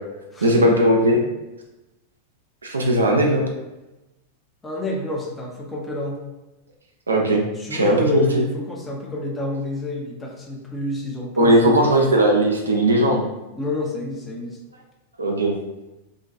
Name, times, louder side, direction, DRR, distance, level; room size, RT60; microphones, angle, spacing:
voice 1, 0.4-1.2 2.6-3.5 7.1-7.4 7.7-8.4 11.4-13.2 15.2-15.5, right 1 dB, 75° right, 0 dB, 0.4 m, -18 dB
voice 2, 4.6-6.2 7.5-11.9 13.6-14.6, left 2 dB, 15° left, -1 dB, 0.5 m, -29 dB
2.5 x 2.2 x 2.4 m, 1.0 s
figure-of-eight pair, 90°, 0 cm